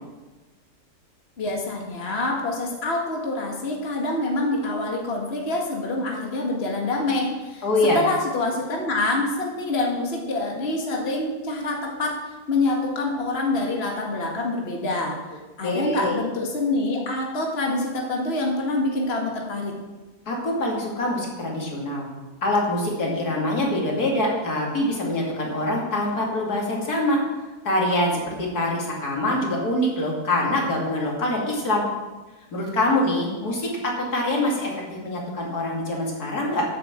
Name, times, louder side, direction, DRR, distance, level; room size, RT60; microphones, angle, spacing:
voice 1, 1.4-7.6 7.9-12.2 12.5-15.2 15.6-19.7, left 2 dB, 40° left, -1 dB, 2.0 m, -26 dB
voice 2, 7.6-8.0 15.6-16.2 20.3-22.1 22.4-27.2 27.6-31.8 32.5-36.6, left 1 dB, 90° left, -2 dB, 3.1 m, -24 dB
9.9 x 7.9 x 7.6 m, 1.2 s
omnidirectional pair, 1.6 m